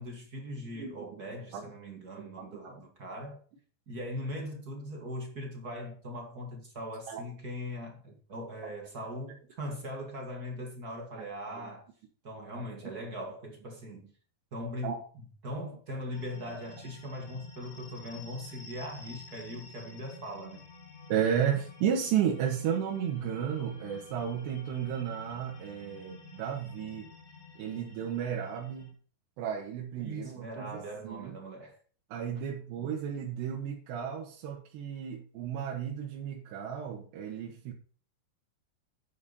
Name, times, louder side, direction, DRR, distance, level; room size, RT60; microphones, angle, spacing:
voice 1, 0.0-3.4 3.9-11.9 12.2-14.1 14.5-20.6 30.0-31.8, equal, 40° right, 1.4 m, -40 dB
sound 1, 16.1-28.9, left 4 dB, 25° left, 1.8 m, -50 dB
voice 2, 21.1-27.1 27.6-28.9 29.4-30.8 31.0-31.3 32.1-37.7, right 8 dB, 85° right, 3.5 m, -33 dB
10.5 x 9.0 x 4.1 m
omnidirectional pair, 4.9 m